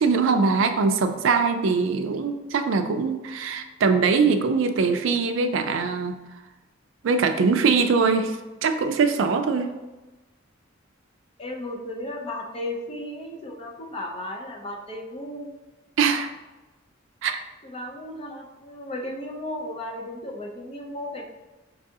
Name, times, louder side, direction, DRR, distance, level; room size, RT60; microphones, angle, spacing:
voice 1, 0.0-6.2 7.0-9.7 16.0-16.3 17.2-17.4, right 4 dB, 70° right, 7 dB, 0.3 m, -22 dB
voice 2, 11.4-15.5 17.6-21.2, left 1 dB, 30° left, 0 dB, 0.5 m, -35 dB
4.6 x 2.3 x 2.7 m, 1.1 s
head